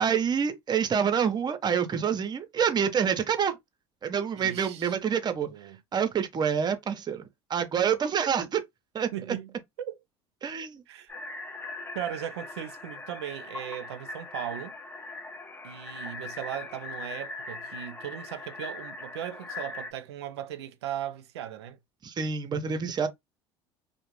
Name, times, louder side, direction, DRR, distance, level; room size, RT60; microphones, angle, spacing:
voice 1, 0.0-3.6 4.0-5.5 5.9-7.2 7.5-8.6 8.9-9.1 10.4-10.8 22.0-23.1, right 7 dB, 30° right, 0.6 m, -27 dB
voice 2, 4.3-5.0 5.4-5.8 9.1-10.0 10.9-11.1 11.9-14.7 15.6-21.8, right 11 dB, 90° right, 0.4 m, -38 dB
sound 1, 11.1-19.9, left 3 dB, 15° left, 0.4 m, -40 dB
2.4 x 2.0 x 3.0 m
hypercardioid pair, 80°, 14 cm